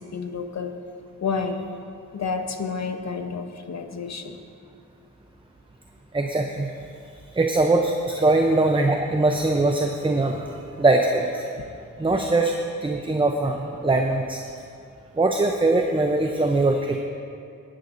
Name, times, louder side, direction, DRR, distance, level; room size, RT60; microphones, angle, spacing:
voice 1, 0.1-0.7 1.2-1.6 2.1-4.4, left 5 dB, 60° left, 6 dB, 0.9 m, -29 dB
voice 2, 6.1-6.7 7.3-10.5 10.8-11.4 12.0-14.4 15.2-17.0, right 2 dB, 15° right, 3 dB, 0.6 m, -21 dB
16.0 x 9.5 x 2.6 m, 2.4 s
wide cardioid pair, 80°, 31 cm